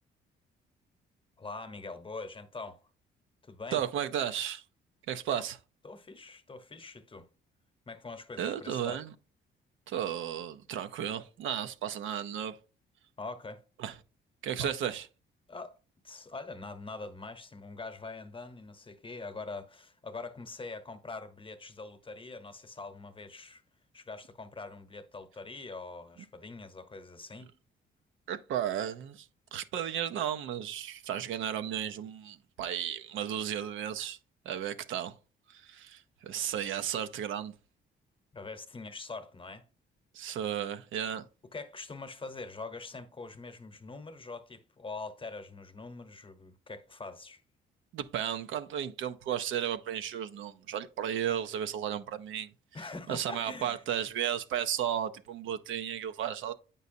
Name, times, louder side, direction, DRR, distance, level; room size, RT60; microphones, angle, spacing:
voice 1, 1.4-2.8 3.4-3.8 5.3-5.5 5.8-7.3 7.9-9.0 13.2-13.6 14.6-14.7 15.5-15.8 16.0-23.6 23.9-27.5 38.3-39.6 41.5-47.4 52.7-53.8, left 3 dB, 25° left, 0.9 m, -43 dB
voice 2, 3.7-4.6 5.1-5.6 8.4-9.1 9.9-12.6 13.8-13.9 14.4-15.1 28.3-34.2 34.4-35.2 35.5-37.5 40.1-41.3 47.9-52.5 53.1-56.5, right 10 dB, 80° right, 0.6 m, -34 dB
8.2 x 5.4 x 2.6 m
cardioid pair, 90°, 20 cm